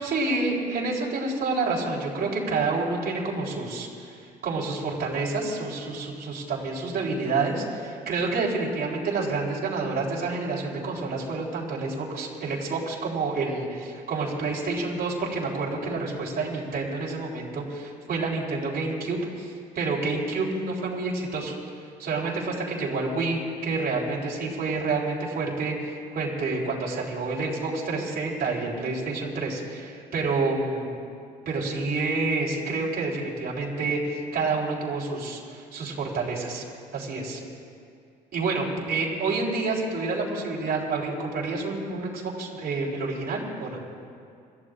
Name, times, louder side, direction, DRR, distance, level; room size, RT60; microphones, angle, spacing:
voice 1, 0.0-21.5 22.0-30.9 31.5-36.6 36.9-37.4 38.3-43.8, right 3 dB, 45° right, -4 dB, 3.8 m, -28 dB
27.5 x 14.5 x 2.5 m, 2.4 s
hypercardioid pair, 55°, 21 cm